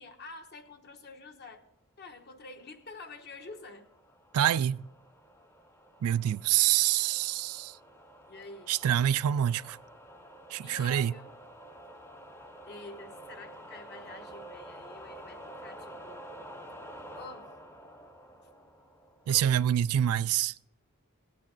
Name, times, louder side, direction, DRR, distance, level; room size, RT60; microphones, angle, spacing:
voice 1, 0.0-1.6 2.0-3.9 8.3-8.7 10.6-11.3 12.6-16.3 17.2-17.5 19.3-19.6, left 3 dB, 50° left, 1.1 m, -47 dB
sound 1, 3.0-19.5, right 1 dB, 10° left, 0.6 m, -49 dB
voice 2, 4.3-4.8 6.0-7.7 8.7-9.8 10.5-11.1 19.3-20.5, right 11 dB, 85° right, 0.3 m, -26 dB
17.5 x 8.6 x 3.9 m
head